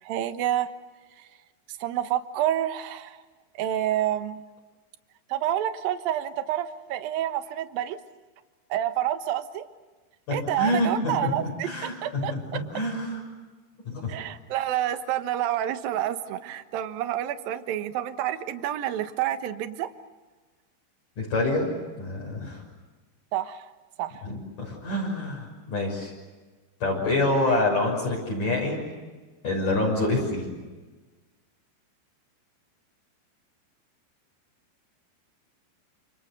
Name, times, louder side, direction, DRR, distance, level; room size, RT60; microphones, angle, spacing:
voice 1, 0.0-0.7 1.8-3.2 3.6-4.4 5.3-8.0 8.7-9.6 10.3-12.3 14.1-19.9 23.3-23.7 24.0-24.1 27.4-27.6, right 12 dB, 65° right, 9 dB, 2.7 m, -28 dB
voice 2, 10.3-13.2 13.9-14.2 21.2-22.6 24.2-26.1 26.8-28.8 29.4-30.5, left 2 dB, 45° left, -3 dB, 7.6 m, -27 dB
28.5 x 28.5 x 6.7 m, 1.3 s
omnidirectional pair, 5.2 m